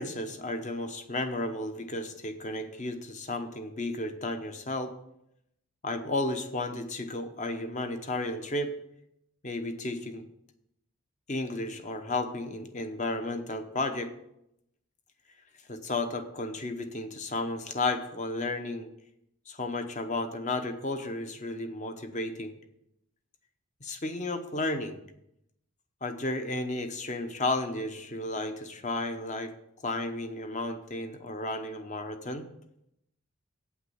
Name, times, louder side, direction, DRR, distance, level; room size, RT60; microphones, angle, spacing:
voice 1, 0.0-4.9 5.8-8.7 9.4-10.2 11.3-14.1 15.7-18.9 19.5-22.5 23.8-25.0 26.0-29.5 29.8-32.5, left 2 dB, 35° left, 8 dB, 0.9 m, -33 dB
8.6 x 5.8 x 7.9 m, 0.80 s
head